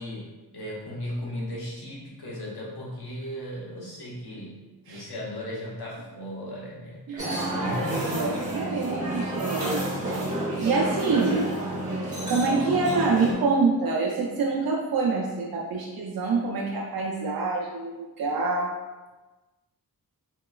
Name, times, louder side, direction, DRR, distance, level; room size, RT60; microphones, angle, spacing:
voice 1, 0.0-4.6 4.9-8.4, equal, 85° left, -5 dB, 0.9 m, -36 dB
voice 2, 7.1-7.6 7.9-10.3 10.6-11.5 12.3-18.7, right 4 dB, 70° right, -3 dB, 0.5 m, -26 dB
sound 1, 7.2-13.3, right 1 dB, 20° right, 1.2 m, -30 dB
3.0 x 2.9 x 2.3 m, 1.2 s
wide cardioid pair, 85°, 38 cm